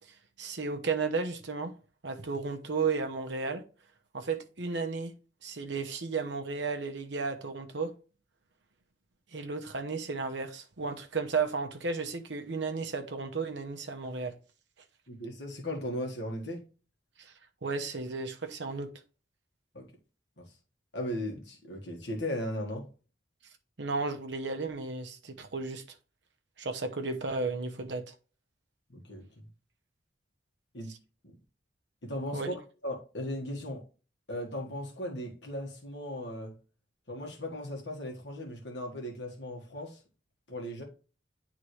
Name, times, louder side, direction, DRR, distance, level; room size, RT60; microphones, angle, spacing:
voice 1, 0.4-1.7 2.0-3.6 4.1-5.1 5.4-7.9 9.3-14.4 17.3-17.4 17.6-18.9 23.8-25.8 26.6-28.1 32.3-32.5, right 4 dB, 65° right, 0.9 m, -33 dB
voice 2, 15.1-16.7 19.7-19.9 20.4-20.5 20.9-22.9 28.9-29.4 30.7-30.9 31.2-31.3 32.0-33.8 34.3-36.5 37.1-40.0 40.5-40.8, left 1 dB, 65° left, 1.7 m, -37 dB
9.9 x 3.7 x 3.2 m
head